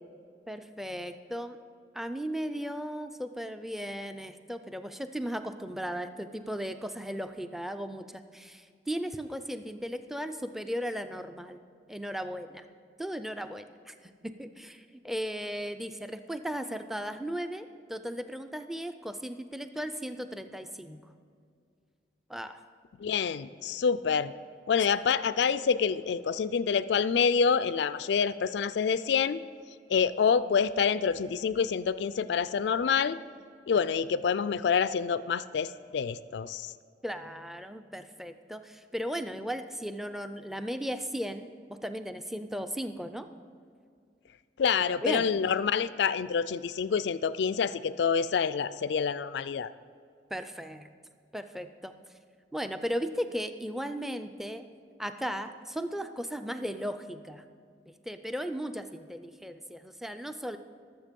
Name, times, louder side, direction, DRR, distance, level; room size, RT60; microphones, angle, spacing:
voice 1, 0.5-1.6 1.9-11.6 11.9-12.6 13.0-13.9 14.2-21.0 22.3-22.6 37.0-43.3 45.0-45.3 50.3-51.0 51.3-51.9 52.5-54.7 55.0-57.4 57.9-60.6, equal, ahead, 9 dB, 0.4 m, -36 dB
voice 2, 23.0-24.3 24.7-29.4 29.9-33.2 33.7-36.7 44.6-49.7, left 6 dB, 70° left, 16 dB, 0.3 m, -27 dB
19.5 x 7.3 x 5.2 m, 2.3 s
head